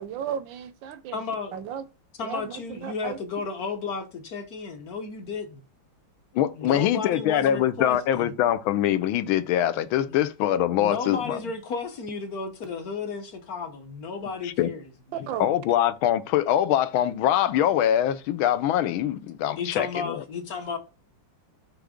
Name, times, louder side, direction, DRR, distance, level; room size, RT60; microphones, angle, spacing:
voice 1, 0.0-1.2 1.5-1.9 2.2-3.2 15.3-15.6, right 8 dB, 75° right, 1.2 m, -34 dB
voice 2, 1.1-1.5 2.2-5.6 6.5-8.3 10.1-10.2 10.7-14.8 19.6-20.8, left 5 dB, 55° left, 1.3 m, -33 dB
voice 3, 6.3-11.4 14.4-14.7 15.4-20.2, left 11 dB, 80° left, 1.4 m, -23 dB
6.2 x 3.4 x 5.0 m
omnidirectional pair, 2.3 m